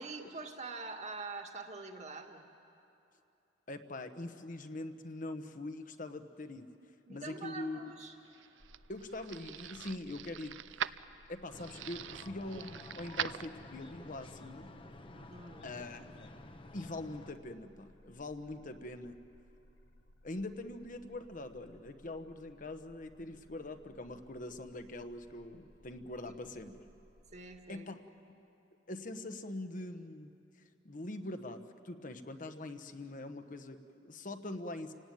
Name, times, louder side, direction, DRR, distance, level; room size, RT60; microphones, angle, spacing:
voice 1, 0.0-2.4 7.1-8.2 15.1-15.8 27.3-27.9, right 3 dB, 40° right, 3 dB, 1.9 m, -45 dB
voice 2, 3.7-6.7 7.1-7.9 8.9-10.8 11.3-14.7 15.6-16.3 16.7-19.2 20.2-26.8 27.7-28.0 28.9-30.3 30.8-34.9, left 2 dB, 45° left, 8 dB, 1.1 m, -43 dB
sound 1, 8.0-14.0, right 9 dB, 80° right, 0.5 m, -43 dB
sound 2, 8.6-27.5, left 1 dB, 70° left, 1.3 m, -63 dB
sound 3, 11.5-17.3, left 2 dB, 30° left, 1.0 m, -52 dB
29.5 x 18.0 x 9.2 m, 2.8 s
head